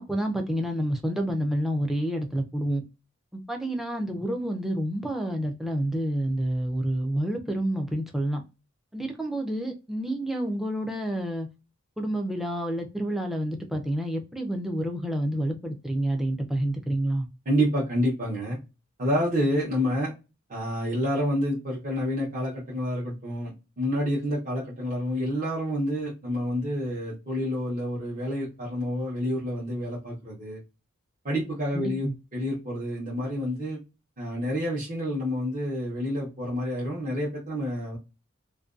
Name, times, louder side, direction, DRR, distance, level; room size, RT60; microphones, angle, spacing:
voice 1, 0.0-2.8 3.5-8.4 8.9-11.5 12.0-17.3 31.7-32.1, right 1 dB, ahead, 2 dB, 0.4 m, -28 dB
voice 2, 17.4-18.6 19.0-20.1 20.5-23.5 23.8-30.6 31.2-33.8 34.2-38.0, equal, 40° right, -6 dB, 0.8 m, -28 dB
2.5 x 2.2 x 2.4 m, 0.28 s
head